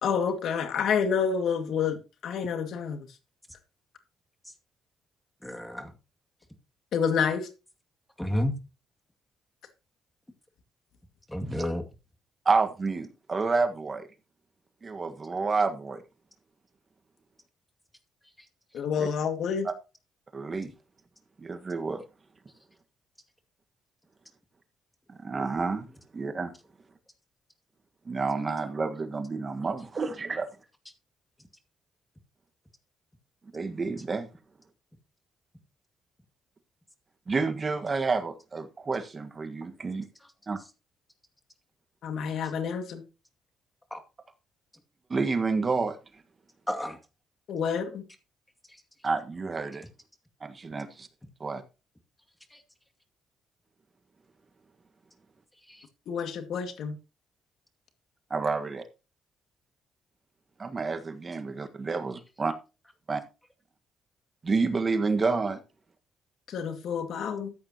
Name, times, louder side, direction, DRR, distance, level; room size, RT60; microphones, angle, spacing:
voice 1, 0.0-3.1 6.9-7.5 18.7-19.7 42.0-43.0 47.5-48.0 56.1-57.0 66.5-67.5, left 6 dB, 70° left, 2.1 m, -28 dB
voice 2, 5.4-5.9 8.2-8.5 11.3-11.8 43.9-44.0 46.7-47.0 52.5-52.6 55.7-55.8, left 1 dB, 10° left, 2.3 m, -31 dB
voice 3, 12.4-14.1 14.8-16.0 19.0-19.1 20.3-20.7 21.4-22.0 25.2-25.8 26.1-26.5 28.1-30.5 33.5-34.3 37.3-40.1 40.5-40.6 45.1-46.0 49.0-49.8 50.4-51.1 51.4-51.6 58.3-58.8 60.6-62.5 63.1-63.2 64.4-65.6, right 4 dB, 35° right, 1.5 m, -29 dB
14.0 x 8.9 x 2.9 m
cardioid pair, 90°, 0 cm